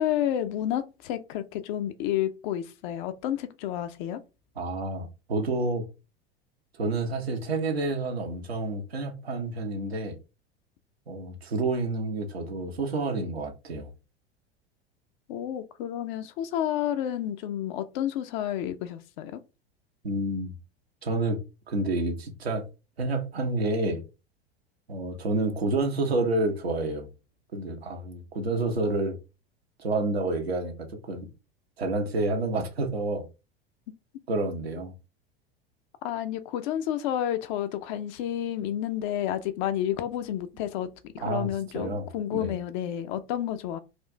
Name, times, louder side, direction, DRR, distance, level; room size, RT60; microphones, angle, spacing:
voice 1, 0.0-4.2 15.3-19.4 36.0-40.9 41.1-43.8, left 11 dB, 50° left, 0.6 m, -30 dB
voice 2, 4.6-5.9 6.8-10.2 11.1-13.9 20.0-20.5 21.0-21.4 21.7-22.7 23.0-24.0 24.9-27.1 27.5-29.2 29.8-31.3 31.8-33.3 34.3-34.9 41.2-41.5 41.7-42.5, right 2 dB, 80° right, 1.0 m, -29 dB
4.3 x 2.5 x 3.2 m
figure-of-eight pair, 80°, 31 cm